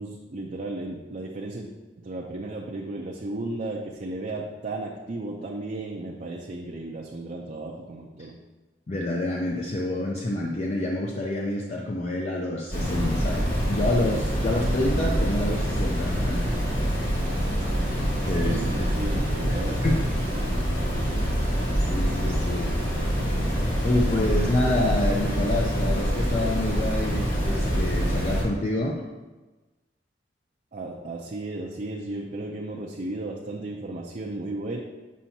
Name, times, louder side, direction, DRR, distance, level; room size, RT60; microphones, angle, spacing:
voice 1, 0.0-1.7 2.0-8.4 18.3-19.8 20.4-20.6 30.7-34.8, right 2 dB, 45° right, -1 dB, 0.5 m, -34 dB
voice 2, 8.9-16.5 18.2-18.9 19.5-20.1 21.8-22.8 23.8-29.1, left 1 dB, 35° left, -1 dB, 0.5 m, -28 dB
sound 1, 12.7-28.4, equal, 55° left, 1.9 m, -25 dB
7.4 x 5.5 x 2.7 m, 1.2 s
head